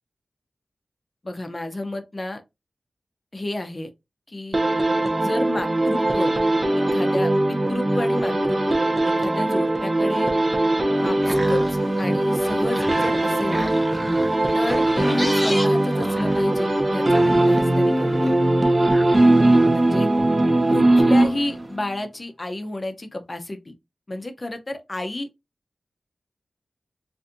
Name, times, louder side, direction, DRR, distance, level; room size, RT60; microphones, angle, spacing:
voice 1, 1.2-2.4 3.3-3.9 4.3-4.6 5.2-6.3 6.8-10.3 11.0-13.7 14.5-18.3 19.7-20.1 20.7-23.7 24.1-25.3, left 2 dB, 35° left, 0.6 m, -31 dB
sound 1, 4.5-21.7, right 1 dB, 35° right, 0.7 m, -20 dB
sound 2, 10.9-21.8, equal, 10° right, 1.1 m, -35 dB
4.0 x 2.5 x 2.5 m
wide cardioid pair, 90°, 0 cm